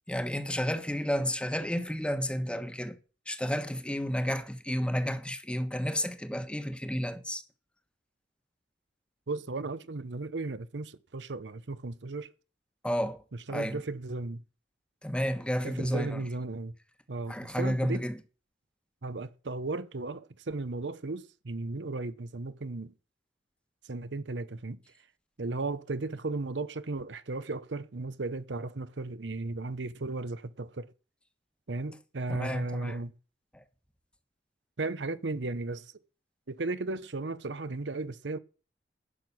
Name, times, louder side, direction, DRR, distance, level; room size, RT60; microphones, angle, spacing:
voice 1, 0.1-3.0 3.3-7.4 12.8-13.2 13.5-13.8 15.0-16.2 17.3-18.2 32.3-33.0 33.5-33.6, equal, 5° left, 1.2 m, -31 dB
voice 2, 9.3-12.3 13.5-14.4 15.6-16.7 17.1-18.0 19.0-22.9 23.9-24.8 25.4-30.9 31.7-33.1 34.8-35.9 36.5-38.4, right 3 dB, 90° right, 0.8 m, -35 dB
11.0 x 6.1 x 8.5 m
head